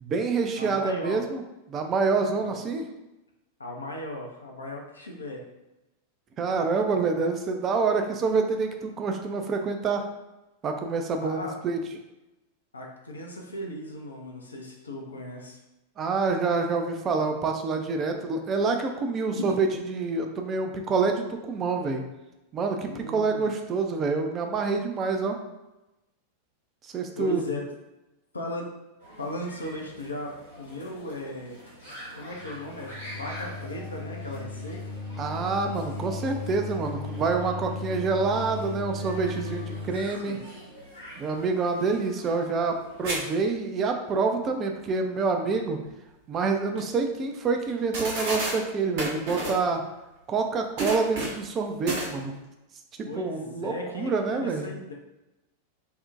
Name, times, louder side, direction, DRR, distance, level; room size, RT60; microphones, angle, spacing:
voice 1, 0.0-1.4 1.7-2.8 6.4-10.0 10.6-11.8 16.0-22.0 22.5-25.4 26.9-27.4 35.2-40.4 41.2-45.8 46.3-49.8 50.3-52.3 53.0-54.7, right 4 dB, 25° right, 4 dB, 0.3 m, -27 dB
voice 2, 0.6-1.2 2.4-2.5 3.6-5.4 11.2-11.5 12.7-15.6 19.3-19.6 22.8-23.4 27.2-27.6 28.3-28.7 29.2-31.6 32.1-35.0 39.2-39.9 40.2-40.4 53.0-54.9, left 1 dB, 75° left, -1 dB, 0.4 m, -37 dB
sound 1, 29.0-43.1, equal, 85° right, 0.9 m, -46 dB
sound 2, 32.3-40.1, left 3 dB, 30° left, 0.6 m, -36 dB
sound 3, 43.0-43.2 43.5-43.6 46.3-46.4 46.8-46.9 47.7-47.8 47.9-48.6 49.0-49.6 50.8-51.4 51.9-52.1, right 2 dB, 50° right, 0.7 m, -30 dB
2.6 x 2.1 x 2.4 m, 0.99 s
figure-of-eight pair, 90°, 0 cm